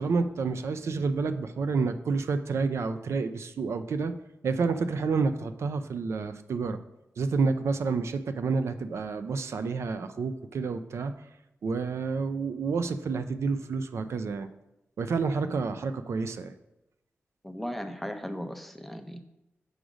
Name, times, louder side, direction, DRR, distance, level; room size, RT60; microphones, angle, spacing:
voice 1, 0.0-4.1 4.4-6.8 7.2-11.1 11.6-14.5 15.0-16.5, right 4 dB, 75° right, 10 dB, 0.4 m, -29 dB
voice 2, 17.4-19.2, equal, 5° left, 7 dB, 0.6 m, -37 dB
6.3 x 5.0 x 5.0 m, 0.90 s
wide cardioid pair, 90°, 5 cm